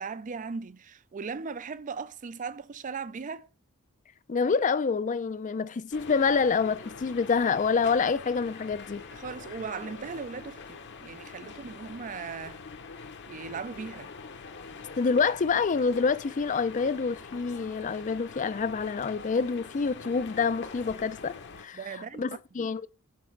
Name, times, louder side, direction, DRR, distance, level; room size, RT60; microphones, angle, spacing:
voice 1, 0.0-3.5 9.1-12.6 13.3-14.1 21.7-22.7, right 5 dB, 35° right, 0.4 m, -38 dB
voice 2, 4.3-9.0 15.0-21.8 22.2-22.3 22.5-22.9, left 5 dB, 35° left, 0.4 m, -27 dB
sound 1, 5.9-21.7, left 4 dB, 55° left, 0.9 m, -44 dB
7.3 x 4.9 x 4.5 m
head